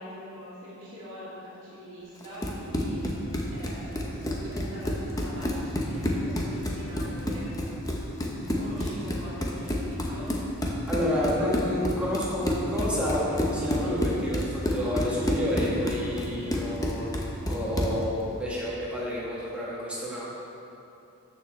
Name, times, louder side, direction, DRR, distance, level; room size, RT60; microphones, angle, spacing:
voice 1, 0.0-10.4 16.2-16.6, equal, 55° right, -12 dB, 2.1 m, -43 dB
Run, 2.2-18.0, left 1 dB, 15° left, 0.7 m, -29 dB
voice 2, 10.9-17.0 17.5-20.2, left 1 dB, 5° right, -8 dB, 1.8 m, -30 dB
13.0 x 6.6 x 3.2 m, 2.8 s
head